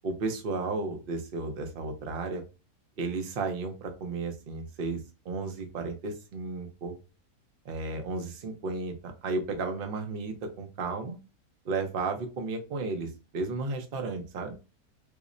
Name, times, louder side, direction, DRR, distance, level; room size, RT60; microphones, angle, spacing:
voice 1, 0.0-2.4 3.0-5.0 5.2-6.9 7.6-11.2 11.6-14.6, right 3 dB, 50° right, 5 dB, 0.7 m, -33 dB
4.8 x 2.0 x 2.5 m, 0.31 s
omnidirectional pair, 1.6 m